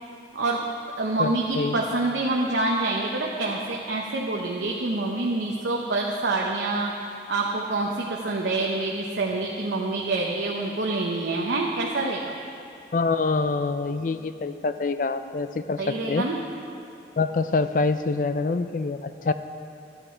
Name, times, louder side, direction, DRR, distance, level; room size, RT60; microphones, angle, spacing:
voice 1, 0.3-0.6 1.0-6.9 7.3-12.3 15.8-16.4, right 2 dB, 85° right, -2 dB, 0.9 m, -26 dB
voice 2, 1.2-1.8 12.9-16.2 17.2-19.3, left 3 dB, 45° left, 11 dB, 0.4 m, -26 dB
12.0 x 8.9 x 4.4 m, 2.5 s
head